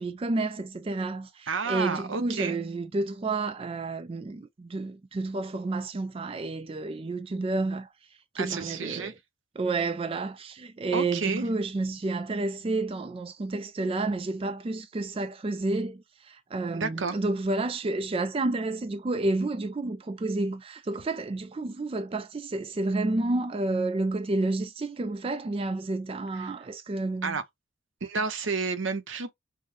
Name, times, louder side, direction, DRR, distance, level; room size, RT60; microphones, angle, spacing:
voice 1, 0.0-7.9 8.3-9.1 9.6-27.4, right 2 dB, 30° right, 0.3 m, -30 dB
voice 2, 1.5-2.6 8.4-9.1 10.9-11.4 16.8-17.2 26.3-26.5 27.2-27.4 28.0-29.3, right 4 dB, 75° right, 0.7 m, -30 dB
5.4 x 2.1 x 3.1 m
head